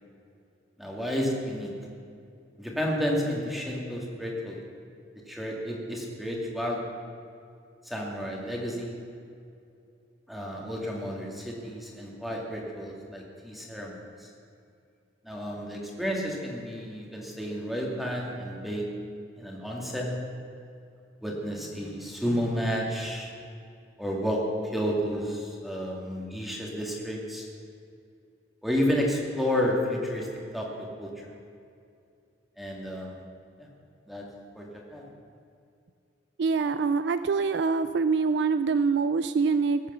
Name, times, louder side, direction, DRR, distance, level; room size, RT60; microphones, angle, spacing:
voice 1, 0.8-1.7 2.6-4.6 5.3-6.8 7.8-9.0 10.3-14.3 15.2-18.9 19.4-20.2 21.2-23.3 24.0-27.5 28.6-31.3 32.6-33.2 33.6-33.7 34.1-34.3 34.5-35.1, equal, ahead, -2 dB, 2.3 m, -31 dB
voice 2, 36.4-39.8, right 4 dB, 65° right, 12 dB, 0.4 m, -25 dB
19.0 x 8.7 x 6.8 m, 2.5 s
head